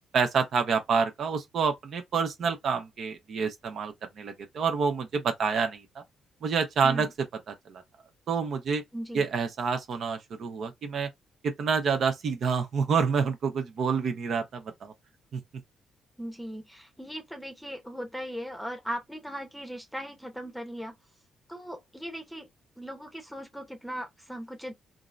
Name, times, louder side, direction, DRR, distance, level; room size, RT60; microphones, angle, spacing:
voice 1, 0.1-5.8 6.4-7.1 7.5-7.8 8.3-8.8 9.1-11.1 11.4-14.9 15.3-15.4, right 5 dB, 60° right, 0.8 m, -28 dB
voice 2, 8.9-9.3 16.2-21.0 21.5-22.5 22.8-24.7, equal, ahead, 0.9 m, -38 dB
3.7 x 2.0 x 2.5 m
cardioid pair, 90°, 0 cm